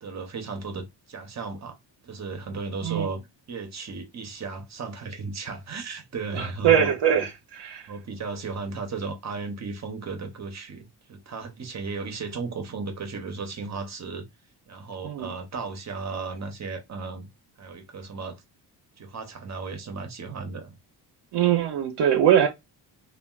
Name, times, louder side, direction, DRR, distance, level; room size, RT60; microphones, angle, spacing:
voice 1, 0.0-1.8 2.0-3.2 3.5-7.3 7.9-14.3 14.7-17.3 17.6-18.4 19.0-20.8, right 4 dB, 40° right, 0.8 m, -35 dB
voice 2, 6.4-7.9 15.0-15.3 21.3-22.5, right 9 dB, 70° right, 0.7 m, -22 dB
3.4 x 2.4 x 2.3 m
cardioid pair, 135°, 42 cm